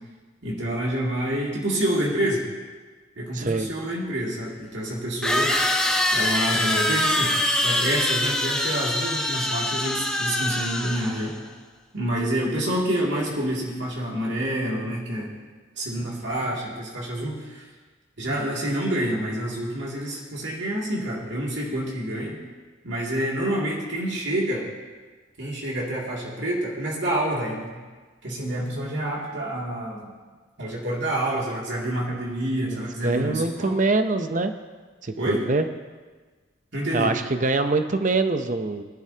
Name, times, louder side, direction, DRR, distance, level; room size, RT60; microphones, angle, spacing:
voice 1, 0.4-2.4 3.2-5.8 6.1-7.3 7.6-11.3 11.9-15.3 15.8-17.7 18.2-22.4 22.8-24.7 25.4-27.7 28.2-30.1 30.6-33.8 35.2-35.5 36.7-37.1, right 1 dB, 65° right, -4 dB, 2.5 m, -27 dB
voice 2, 3.3-3.7 32.1-32.2 32.7-34.5 35.0-35.7 36.9-38.8, right 3 dB, 40° right, 8 dB, 0.7 m, -24 dB
sound 1, 3.6-3.7 5.2-11.3, left 1 dB, 5° left, 0.9 m, -24 dB
19.0 x 12.0 x 2.9 m, 1.4 s
head